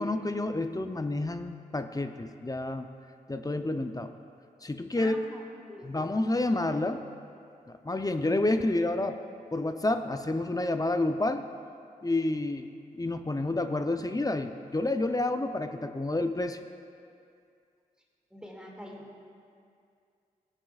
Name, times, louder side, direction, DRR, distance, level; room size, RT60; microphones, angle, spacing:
voice 1, 0.0-2.9 3.3-4.1 4.6-5.1 5.8-7.0 7.7-9.2 9.5-11.5 12.0-16.6, left 2 dB, 25° left, 8 dB, 0.6 m, -29 dB
voice 2, 5.0-6.0 18.3-19.2, equal, 5° right, -2 dB, 2.2 m, -45 dB
16.0 x 8.9 x 2.4 m, 2.4 s
cardioid pair, 40°, 16 cm